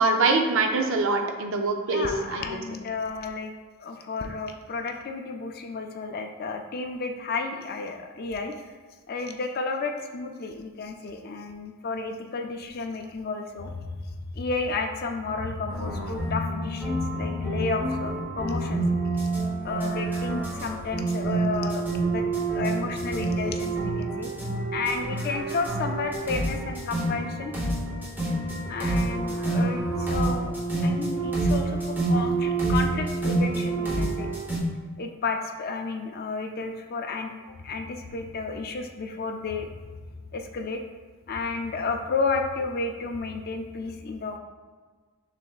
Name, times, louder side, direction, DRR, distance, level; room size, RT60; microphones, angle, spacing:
voice 1, 0.0-2.6, right 3 dB, 60° right, 4 dB, 0.5 m, -24 dB
voice 2, 1.9-3.5 3.8-8.7 9.1-19.4 19.6-22.2 22.5-24.3 24.7-27.5 28.7-34.3 35.0-37.3 37.6-39.7 40.3-40.8 41.3-44.4, left 4 dB, 45° left, 4 dB, 0.4 m, -32 dB
sound 1, 15.7-34.6, right 2 dB, 10° right, 0.8 m, -28 dB
5.9 x 3.3 x 2.3 m, 1.4 s
head